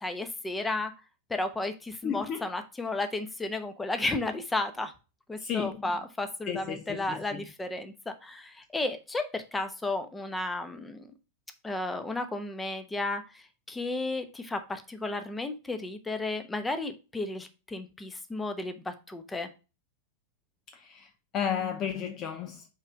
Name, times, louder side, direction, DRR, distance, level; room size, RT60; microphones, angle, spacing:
voice 1, 0.0-0.9 1.3-4.9 5.3-11.1 11.6-19.5, left 2 dB, 10° left, 1.0 m, -33 dB
voice 2, 2.0-2.4 5.4-5.8 6.5-7.4 20.9-21.1 21.3-22.6, left 8 dB, 30° left, 0.6 m, -32 dB
5.8 x 4.6 x 3.8 m
figure-of-eight pair, 90°, 0 cm